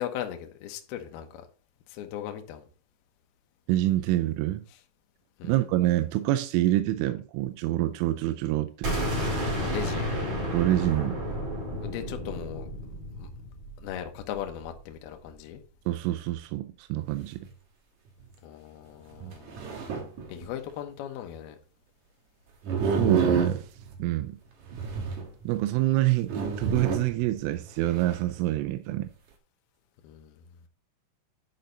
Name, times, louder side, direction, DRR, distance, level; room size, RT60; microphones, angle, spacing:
voice 1, 0.0-1.5 1.9-2.6 5.4-5.6 9.6-10.3 11.8-12.7 13.2-13.3 13.8-15.6 18.4-20.0 20.3-21.6 30.0-30.4, left 10 dB, 70° left, 2.5 m, -38 dB
voice 2, 3.7-4.6 5.4-8.9 10.5-11.2 15.9-17.4 19.2-19.3 22.8-23.7 24.0-24.4 25.4-29.1, right 15 dB, 90° right, 3.2 m, -26 dB
sound 1, 8.8-14.6, equal, 35° right, 5.3 m, -31 dB
sound 2, 17.0-17.1 17.4-17.5 18.2-18.3 19.2-20.7 22.6-24.0 24.6-25.5 25.9-26.0 26.3-27.3 27.6-28.2, right 5 dB, 70° right, 1.8 m, -29 dB
10.5 x 5.5 x 3.9 m
omnidirectional pair, 5.6 m